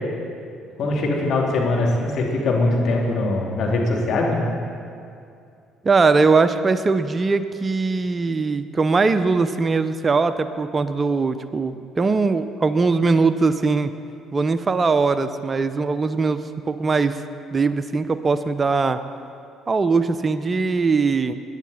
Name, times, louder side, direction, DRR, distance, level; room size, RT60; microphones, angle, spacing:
voice 1, 0.8-4.4, left 2 dB, 60° left, -1 dB, 2.6 m, -21 dB
voice 2, 5.8-13.9 14.3-16.4 16.7-17.2 17.5-19.0 19.7-21.3, right 4 dB, 35° right, 12 dB, 0.7 m, -20 dB
19.0 x 10.5 x 4.2 m, 2.5 s
hypercardioid pair, 55°, 0 cm